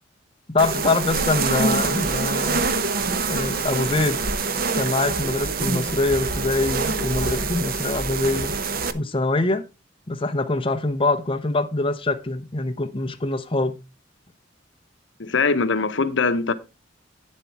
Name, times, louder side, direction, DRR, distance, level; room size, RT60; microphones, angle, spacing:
voice 1, 0.5-2.7 3.3-4.2 4.7-8.5 8.9-9.6 10.1-13.8, left 2 dB, 30° left, 0.8 m, -24 dB
sound 1, 0.6-8.9, right 4 dB, 50° right, 0.8 m, -25 dB
voice 2, 15.2-16.5, left 4 dB, 70° left, 0.9 m, -22 dB
9.4 x 7.5 x 4.5 m
head